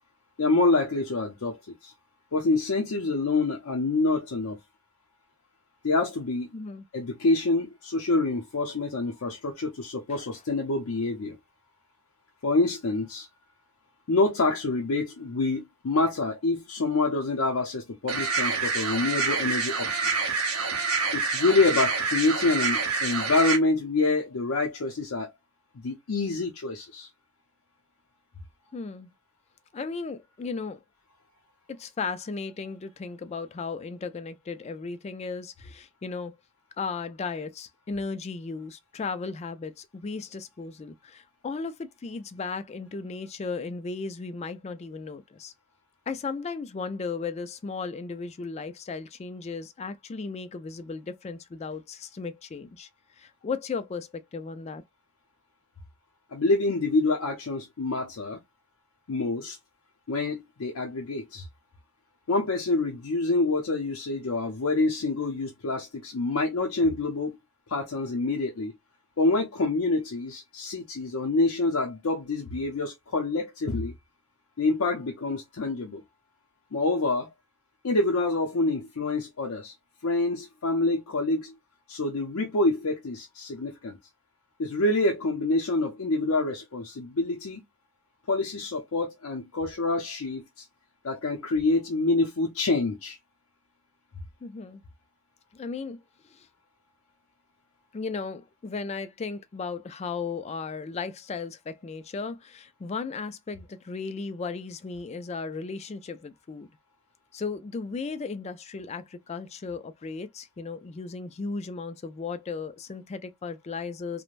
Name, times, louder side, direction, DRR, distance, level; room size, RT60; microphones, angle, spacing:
voice 1, 0.4-1.9 2.3-4.6 5.8-6.5 6.9-11.4 12.4-13.3 14.1-20.3 21.1-25.3 25.8-27.1 56.3-58.4 59.1-59.6 60.1-61.5 62.3-67.4 67.7-68.7 69.2-73.9 74.6-76.0 76.7-77.3 77.8-79.7 80.0-81.5 81.9-84.0 84.6-87.6 88.3-90.7 91.0-93.2, left 2 dB, 75° left, 0.6 m, -26 dB
voice 2, 6.5-6.8 10.1-10.2 28.7-29.1 29.7-30.8 31.7-36.3 36.8-45.5 46.1-52.9 53.2-54.8 94.4-94.8 95.5-96.0 96.3-96.5 97.9-106.7 107.3-114.2, left 4 dB, 30° left, 0.3 m, -35 dB
sound 1, 18.1-23.6, right 4 dB, 75° right, 1.0 m, -27 dB
3.1 x 2.1 x 2.4 m
head